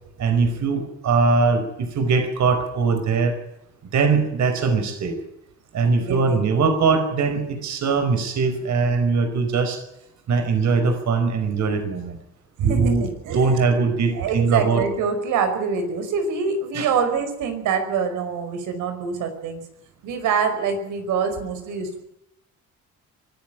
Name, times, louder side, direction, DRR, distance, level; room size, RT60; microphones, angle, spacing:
voice 1, 0.2-3.4 3.9-5.1 5.7-9.8 10.3-12.2 12.6-13.1 13.3-14.8 16.7-16.9, right 4 dB, 65° right, 8 dB, 4.9 m, -21 dB
voice 2, 6.0-6.4 12.6-13.7 14.1-19.6 20.0-22.0, right 6 dB, 90° right, 7 dB, 5.4 m, -25 dB
24.0 x 13.5 x 8.9 m, 0.82 s
cardioid pair, 90°, 30 cm